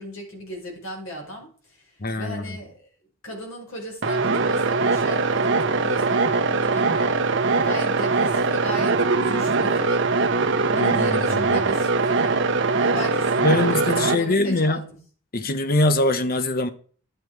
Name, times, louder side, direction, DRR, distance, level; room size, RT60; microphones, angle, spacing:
voice 1, 0.0-1.8 2.2-2.9 3.2-7.2 7.6-10.2 10.7-12.5 12.8-15.0, equal, 80° left, 5.3 m, -36 dB
voice 2, 2.0-2.6 10.7-11.6 13.4-14.8 15.3-16.7, left 2 dB, 45° left, 0.9 m, -23 dB
sound 1, 4.0-14.2, right 3 dB, 60° right, 1.1 m, -21 dB
11.5 x 9.2 x 4.6 m
head